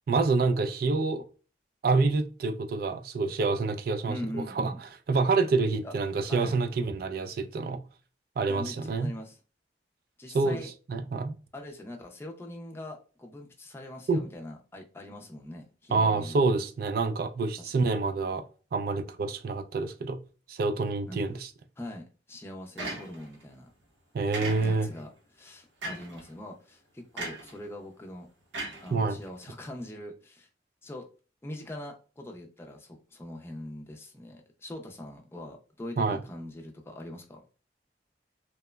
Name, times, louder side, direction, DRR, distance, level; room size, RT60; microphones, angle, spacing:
voice 1, 0.1-1.2 1.8-4.7 5.1-7.8 8.4-9.1 10.3-10.6 10.9-11.3 14.1-14.2 15.9-18.4 18.7-20.2 20.5-21.5 24.1-24.9 28.9-29.2 36.0-36.2, right 3 dB, 55° right, 0.3 m, -27 dB
voice 2, 4.1-4.8 5.8-5.9 6.3-6.6 8.5-9.4 10.2-10.7 11.5-16.5 17.6-17.9 21.1-21.3 21.8-23.7 24.6-28.3 28.8-30.5 30.8-31.0 31.4-37.5, left 1 dB, 15° left, 0.4 m, -42 dB
sound 1, 22.8-23.4 24.3-25.0 25.8-26.2 27.2-27.6 28.5-29.4, right 2 dB, 90° right, 0.9 m, -37 dB
2.9 x 2.1 x 2.2 m
head